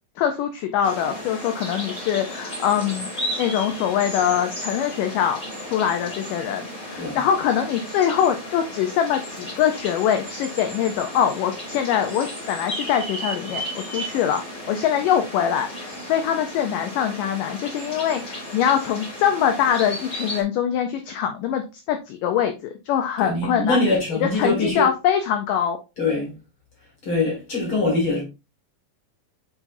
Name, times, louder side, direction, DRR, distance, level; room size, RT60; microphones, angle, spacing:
voice 1, 0.2-5.4 5.7-22.5 22.9-23.8 24.1-25.8, left 9 dB, 85° left, 1.9 m, -23 dB
sound 1, 0.8-20.4, equal, 15° left, 3.9 m, -34 dB
voice 2, 23.2-24.9 26.0-26.3 27.0-28.2, left 2 dB, 40° left, 2.2 m, -23 dB
7.2 x 5.5 x 2.6 m
omnidirectional pair, 4.6 m